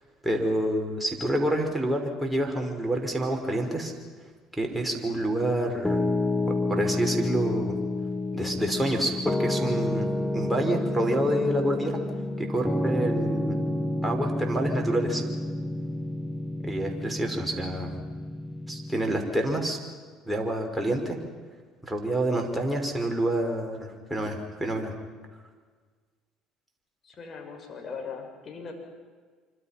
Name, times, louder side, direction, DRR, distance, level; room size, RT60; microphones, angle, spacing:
voice 1, 0.2-3.9 4.6-6.0 6.5-7.7 8.3-10.1 10.3-12.0 12.4-13.6 14.0-15.2 16.6-17.9 18.7-19.8 20.3-21.2 21.8-24.9, right 1 dB, 5° right, 2 dB, 5.5 m, -28 dB
Piano, 5.8-19.2, left 2 dB, 10° left, 1.8 m, -29 dB
voice 2, 27.0-28.7, left 5 dB, 40° left, 3 dB, 6.8 m, -39 dB
26.5 x 25.5 x 6.0 m, 1.5 s
hypercardioid pair, 70°, 0 cm